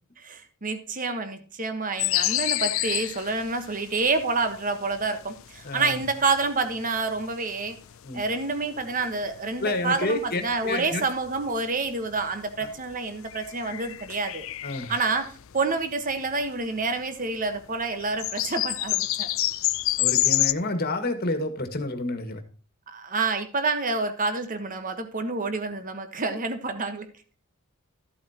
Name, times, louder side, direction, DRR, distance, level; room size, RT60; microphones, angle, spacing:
voice 1, 0.2-7.8 8.1-14.5 14.9-19.3 22.9-27.1, right 3 dB, 35° right, 9 dB, 1.2 m, -28 dB
sound 1, 2.0-16.9 17.3-17.4 17.6-20.5, left 17 dB, 60° left, 0.4 m, -29 dB
voice 2, 5.6-6.0 8.0-8.2 9.6-11.0 14.6-14.9 20.0-22.4, left 2 dB, 45° left, 7 dB, 1.7 m, -29 dB
14.0 x 8.5 x 2.9 m, 0.40 s
head